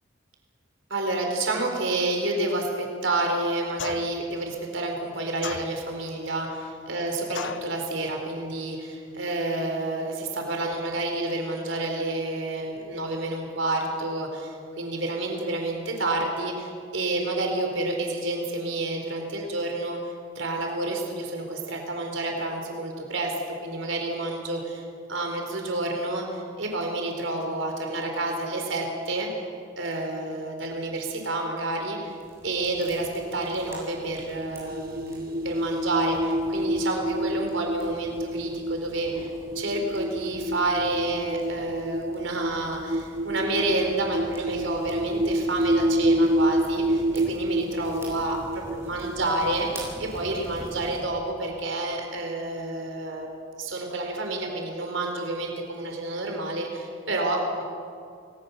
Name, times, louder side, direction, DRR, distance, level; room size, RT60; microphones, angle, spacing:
voice 1, 0.9-23.3 23.6-24.8 25.1-29.3 29.8-32.1 32.4-48.4 48.7-53.3 53.6-57.6, right 2 dB, 75° right, 2 dB, 4.1 m, -29 dB
sound 1, 3.8-4.3 5.4-6.1 7.3-7.8, left 5 dB, 70° left, 1.3 m, -35 dB
sound 2, 32.1-51.0, right 1 dB, 15° right, 7.7 m, -45 dB
sound 3, 34.7-51.0, right 1 dB, 50° right, 1.4 m, -28 dB
29.0 x 20.0 x 7.1 m, 2.4 s
head